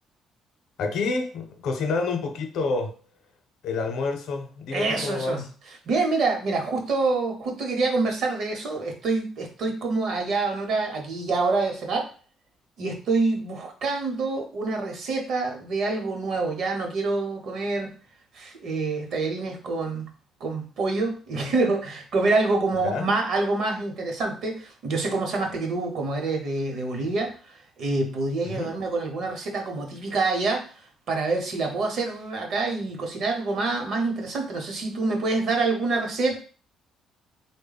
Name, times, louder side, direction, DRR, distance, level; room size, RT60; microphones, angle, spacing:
voice 1, 0.8-3.0 3.6-5.5 22.8-23.1 28.4-28.8, left 4 dB, 65° left, 5 dB, 0.6 m, -28 dB
voice 2, 4.7-5.4 5.9-12.1 12.8-17.9 18.3-20.0 20.4-27.3 27.8-30.7 31.1-36.4, right 3 dB, 55° right, 2 dB, 0.8 m, -26 dB
3.5 x 2.1 x 3.9 m, 0.39 s
cardioid pair, 165°, 0 cm